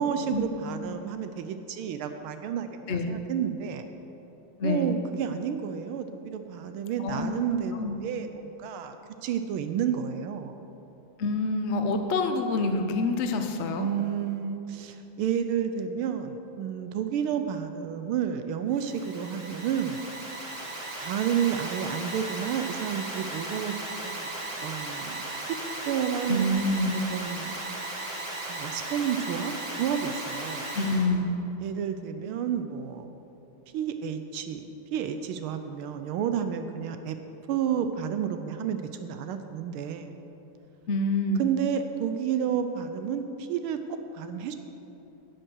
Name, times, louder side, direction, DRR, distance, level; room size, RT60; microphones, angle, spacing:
voice 1, 0.0-3.8 4.6-9.0 9.2-10.5 13.8-20.0 21.0-24.3 24.6-25.2 25.5-25.6 25.8-26.5 27.1-27.6 28.5-30.6 31.6-33.1 33.7-37.2 37.5-40.1 41.4-44.5, right 8 dB, 80° right, 8 dB, 1.4 m, -30 dB
voice 2, 4.6-4.9 7.0-7.3 7.7-7.9 11.2-13.9 26.3-26.9 30.7-31.4 40.9-41.4, left 2 dB, 90° left, 5 dB, 0.6 m, -27 dB
Alarm, 18.7-31.1, right 2 dB, 50° right, 2.7 m, -36 dB
11.0 x 7.7 x 6.2 m, 3.0 s
omnidirectional pair, 2.4 m